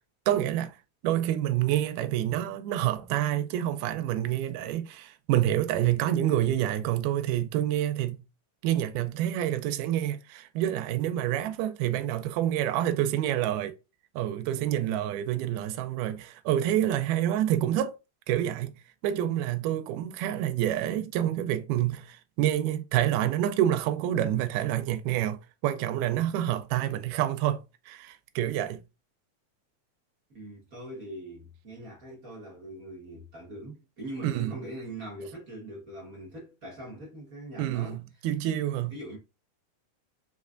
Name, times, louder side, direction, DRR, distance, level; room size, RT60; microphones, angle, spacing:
voice 1, 0.3-0.8 1.0-8.2 8.6-13.7 14.2-17.9 18.3-18.8 19.0-28.8 34.2-34.5 37.6-39.0, right 12 dB, 80° right, 2.0 m, -28 dB
voice 2, 30.3-38.3 38.9-39.2, right 1 dB, 55° right, 0.9 m, -42 dB
5.0 x 3.2 x 2.5 m
omnidirectional pair, 3.7 m